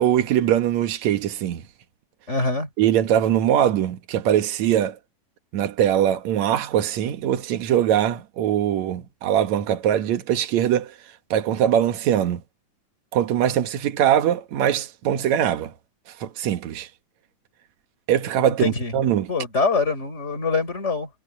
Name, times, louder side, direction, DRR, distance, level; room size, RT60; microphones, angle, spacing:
voice 1, 0.0-1.6 2.8-5.0 5.5-10.9 11.3-12.4 13.1-15.7 16.2-16.9 18.1-19.3, right 10 dB, 60° right, 2.5 m, -22 dB
voice 2, 2.3-2.7 18.6-18.9 19.3-21.1, left 4 dB, 20° left, 4.3 m, -24 dB
omnidirectional pair, 3.8 m